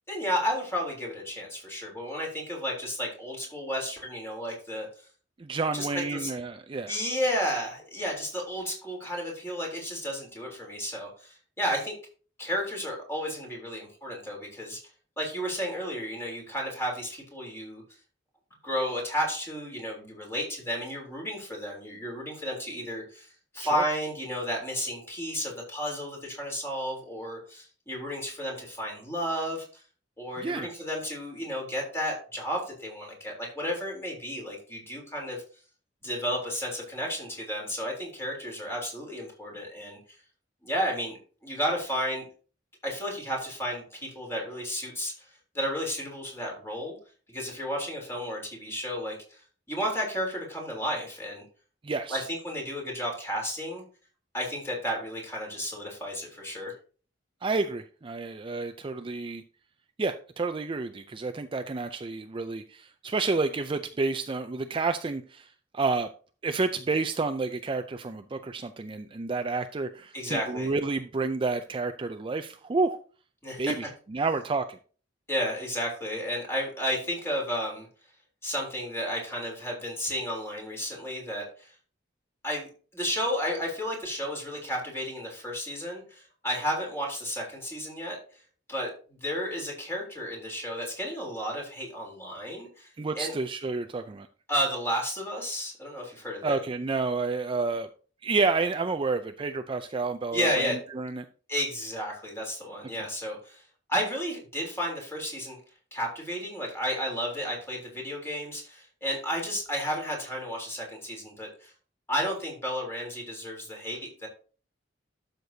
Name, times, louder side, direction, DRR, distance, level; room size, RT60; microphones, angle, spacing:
voice 1, 0.1-4.9 5.7-6.3 6.9-11.9 12.4-14.8 15.2-17.8 18.6-23.3 23.5-29.6 30.2-35.4 36.0-40.0 40.6-41.2 41.4-42.2 42.8-45.3 45.5-46.9 47.3-49.4 49.7-51.4 52.1-53.8 54.3-56.7 70.1-70.7 73.4-73.7 75.3-77.9 78.4-81.7 82.4-88.2 88.7-92.9 93.1-93.3 94.5-96.6 100.3-100.8 101.5-103.6 103.9-105.6 105.9-111.7 112.1-114.3, equal, 15° left, -1 dB, 3.4 m, -32 dB
voice 2, 5.4-6.9 23.6-23.8 30.4-30.7 51.8-52.2 57.4-59.4 60.0-65.5 65.7-66.1 66.4-73.0 73.6-74.8 93.0-94.3 96.4-97.9 98.2-101.3, right 3 dB, 30° right, 8 dB, 0.4 m, -30 dB
12.0 x 6.6 x 2.7 m, 0.39 s
head